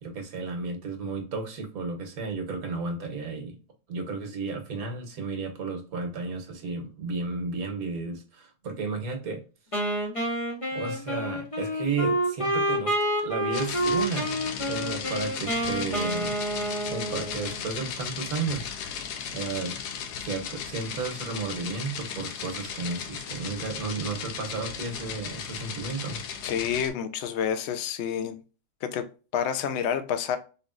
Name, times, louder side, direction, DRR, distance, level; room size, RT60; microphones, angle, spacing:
voice 1, 0.0-3.6 3.9-9.4 10.7-12.9 13.2-14.3 14.7-16.4 16.9-19.8 20.2-26.2, right 4 dB, 65° right, 1.4 m, -33 dB
Wind instrument woodwind instrument, 9.7-17.6, right 1 dB, 25° left, 1.1 m, -28 dB
sound 1, 13.5-26.9, left 7 dB, 90° left, 1.2 m, -36 dB
voice 2, 26.4-28.4 28.8-30.4, left 8 dB, 65° left, 0.7 m, -29 dB
4.2 x 3.4 x 2.4 m
omnidirectional pair, 1.7 m